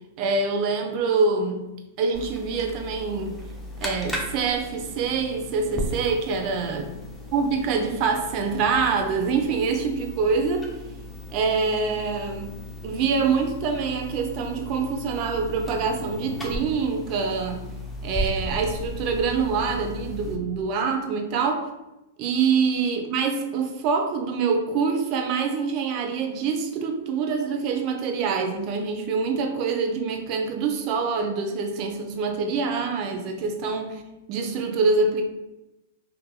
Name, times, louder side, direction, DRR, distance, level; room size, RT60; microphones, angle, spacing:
voice 1, 0.2-1.7 2.0-3.4 3.8-6.9 7.3-10.7 11.3-17.7 18.0-21.7 22.2-34.0 34.3-35.2, right 5 dB, 45° right, 0.5 m, -25 dB
sound 1, 2.1-20.4, left 1 dB, 5° left, 0.5 m, -36 dB
2.7 x 2.5 x 2.2 m
hypercardioid pair, 115°, 0 cm